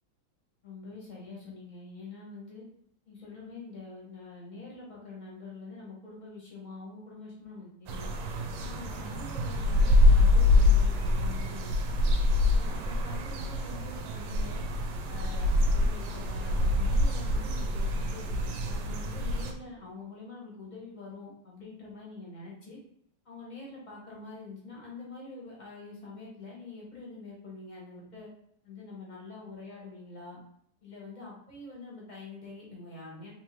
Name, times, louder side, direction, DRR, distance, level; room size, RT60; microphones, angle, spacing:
voice 1, 0.6-2.6 3.0-8.1 8.6-12.0 12.5-14.6 15.1-22.8 23.2-28.3 28.6-30.4 30.8-33.3, left 3 dB, 30° left, -4 dB, 1.0 m, -45 dB
sound 1, 7.9-19.5, left 2 dB, 75° right, 1.2 m, -25 dB
3.6 x 3.0 x 3.1 m, 0.68 s
omnidirectional pair, 2.2 m